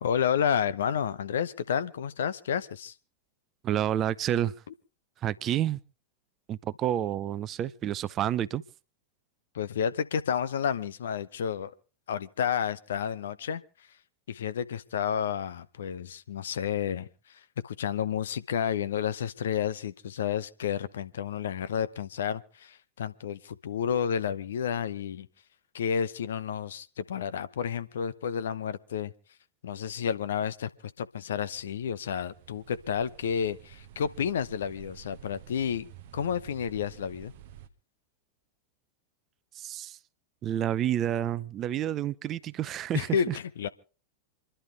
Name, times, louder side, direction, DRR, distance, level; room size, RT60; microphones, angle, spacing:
voice 1, 0.0-2.9 4.7-4.8 9.5-11.7 12.1-13.9 14.3-25.3 25.7-29.1 29.6-35.9 36.1-37.3 42.9-43.7, left 8 dB, 65° left, 0.8 m, -31 dB
voice 2, 3.6-4.5 5.2-5.8 6.5-8.6 39.6-40.0 40.4-43.4, right 11 dB, 30° right, 0.6 m, -29 dB
sound 1, 31.2-37.7, right 11 dB, 50° right, 1.1 m, -51 dB
28.0 x 11.5 x 3.4 m
figure-of-eight pair, 90°, 0 cm